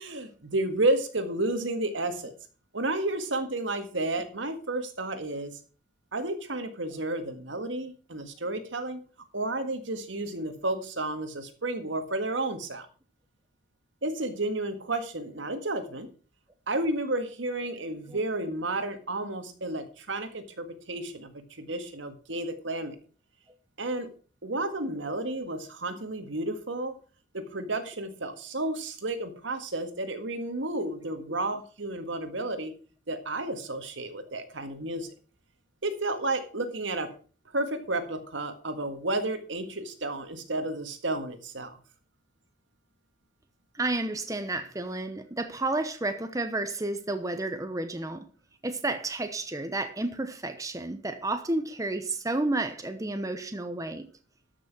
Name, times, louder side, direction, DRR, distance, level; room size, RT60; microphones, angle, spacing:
voice 1, 0.0-2.3 2.7-5.6 6.1-9.0 9.3-12.9 14.0-16.1 16.7-23.0 23.8-24.1 24.4-26.9 27.3-32.7 33.1-35.1 35.8-37.1 37.5-41.8, right 2 dB, 75° right, 1.8 m, -31 dB
voice 2, 43.7-48.3 48.6-54.1, right 2 dB, 20° right, 0.9 m, -31 dB
13.0 x 6.2 x 6.0 m
head